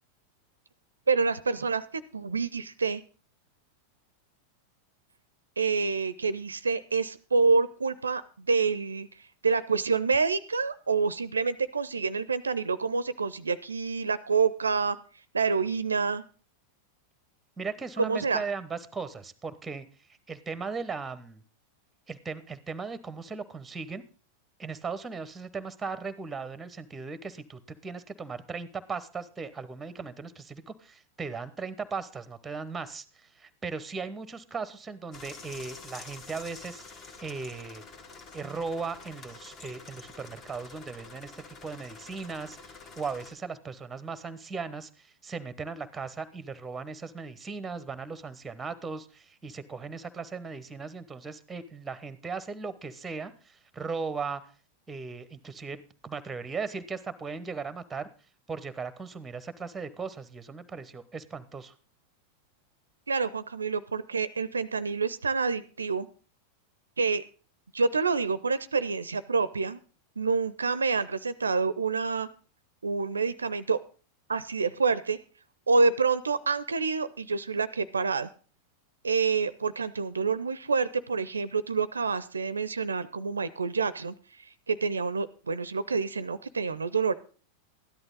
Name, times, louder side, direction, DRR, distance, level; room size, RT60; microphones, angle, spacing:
voice 1, 1.1-1.8 2.1-3.0 5.6-9.1 9.4-15.0 15.3-16.2 18.0-18.4 63.1-66.1 67.0-67.2 67.7-69.8 70.2-72.3 72.8-73.8 74.3-75.2 75.7-78.3 79.0-84.1 84.7-87.1, right 4 dB, 75° right, 16 dB, 0.5 m, -27 dB
voice 2, 17.6-19.9 20.3-21.4 22.1-24.0 24.6-37.8 38.3-54.4 54.9-58.1 58.5-61.7, right 4 dB, 10° right, 15 dB, 1.0 m, -37 dB
sound 1, 35.1-43.3, left 4 dB, 30° left, 1.6 m, -47 dB
13.0 x 11.0 x 3.9 m, 0.37 s
figure-of-eight pair, 90°, 0 cm